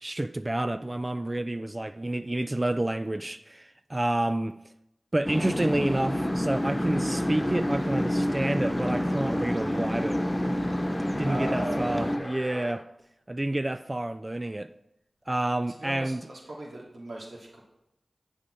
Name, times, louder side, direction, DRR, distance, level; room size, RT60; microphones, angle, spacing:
voice 1, 0.0-4.6 5.1-10.2 11.2-12.8 13.3-14.7 15.3-16.2, right 1 dB, 30° right, 0.3 m, -29 dB
sound 1, 5.2-12.2, equal, 15° left, 0.7 m, -28 dB
sound 2, 6.1-12.8, left 1 dB, 40° left, 1.0 m, -41 dB
voice 2, 11.2-12.3 15.8-17.6, right 1 dB, 80° right, 2.2 m, -38 dB
8.7 x 7.2 x 4.4 m
cardioid pair, 40°, 0 cm